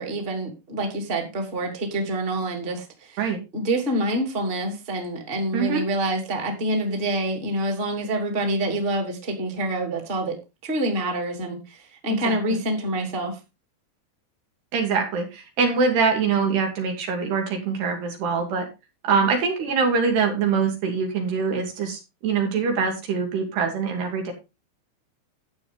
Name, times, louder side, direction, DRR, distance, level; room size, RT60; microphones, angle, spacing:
voice 1, 0.0-3.2 3.5-10.4 10.6-13.4, right 1 dB, 15° right, 3 dB, 2.1 m, -27 dB
voice 2, 5.5-5.8 12.1-12.6 14.7-18.7 19.0-24.3, right 5 dB, 70° right, 3 dB, 4.4 m, -24 dB
12.0 x 8.2 x 3.7 m, 0.26 s
omnidirectional pair, 4.9 m